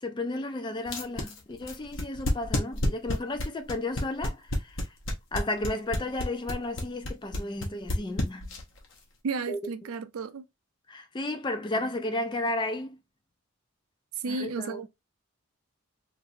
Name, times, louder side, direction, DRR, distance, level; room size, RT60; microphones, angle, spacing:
voice 1, 0.0-4.8 5.3-8.5 9.5-9.6 10.9-13.0 14.3-14.8, left 2 dB, 20° left, 0.3 m, -33 dB
sound 1, 0.9-8.8, left 1 dB, 60° left, 0.9 m, -29 dB
voice 2, 9.2-10.5 14.2-14.9, right 4 dB, 80° right, 0.4 m, -33 dB
2.9 x 2.5 x 2.5 m
head